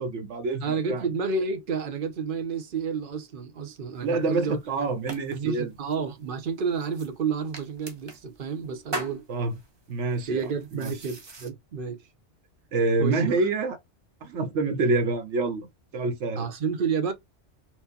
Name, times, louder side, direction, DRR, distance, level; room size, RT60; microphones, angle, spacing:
voice 1, 0.0-1.0 4.0-5.7 9.3-9.6 9.9-10.4 10.7-10.9 12.7-13.8 14.2-15.7 15.9-16.5, right 3 dB, 90° right, 1.1 m, -26 dB
voice 2, 0.6-4.6 5.3-9.3 10.3-12.0 13.0-13.2 16.4-17.1, right 5 dB, 55° right, 0.9 m, -30 dB
sound 1, 3.9-11.5, right 1 dB, 30° right, 0.6 m, -42 dB
4.4 x 2.1 x 2.7 m
omnidirectional pair, 1.2 m